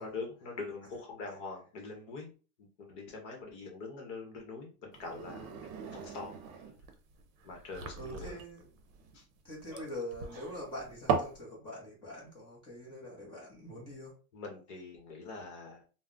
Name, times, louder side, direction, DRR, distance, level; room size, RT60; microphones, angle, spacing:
voice 1, 0.0-2.3 2.6-5.5 5.9-6.4 7.4-8.4 9.1-9.2 9.7-9.8 14.3-15.8, left 4 dB, 55° left, 1 dB, 0.8 m, -43 dB
sound 1, 4.9-11.4, right 6 dB, 60° right, 0.7 m, -38 dB
voice 2, 8.0-8.6 9.4-14.1, left 1 dB, 10° left, -4 dB, 0.5 m, -44 dB
2.2 x 2.0 x 3.6 m, 0.36 s
supercardioid pair, 175°, 46 cm